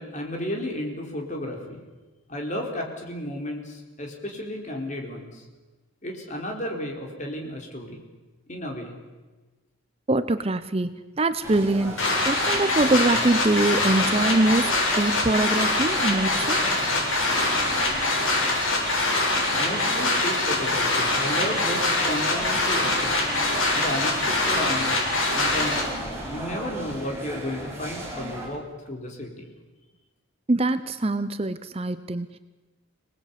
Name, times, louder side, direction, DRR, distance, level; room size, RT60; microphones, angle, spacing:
voice 1, 0.0-1.8 2.3-5.5 6.0-8.0 8.5-9.0 19.5-23.2 23.7-24.9 25.3-29.5, left 1 dB, 35° left, 2 dB, 4.4 m, -33 dB
voice 2, 10.1-16.6 30.5-32.4, right 2 dB, 30° right, 12 dB, 0.7 m, -24 dB
sound 1, 11.4-28.5, equal, 10° right, 6.8 m, -37 dB
sound 2, 12.0-25.8, left 2 dB, 75° left, 8.0 m, -24 dB
26.0 x 19.5 x 8.4 m, 1.2 s
head